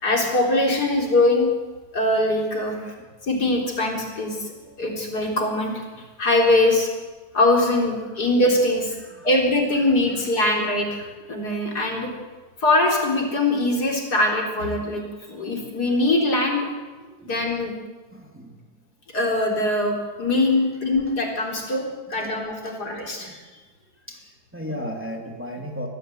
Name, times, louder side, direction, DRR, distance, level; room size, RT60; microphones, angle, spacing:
voice 1, 0.0-1.5 1.9-2.8 3.2-4.5 4.8-5.8 6.2-6.9 7.3-8.9 9.2-12.1 12.6-15.0 15.3-16.7 17.2-17.7 19.1-21.8 22.1-23.4, left 2 dB, 75° left, 0 dB, 4.6 m, -22 dB
voice 2, 2.6-3.1 4.6-5.0 9.0-9.3 9.8-10.2 17.0-17.4 18.1-18.6 21.8-21.9 22.1-22.3 22.6-22.8 23.0-23.4 24.1-25.9, equal, 5° right, 1 dB, 2.8 m, -37 dB
23.0 x 15.0 x 8.0 m, 1.4 s
omnidirectional pair, 1.7 m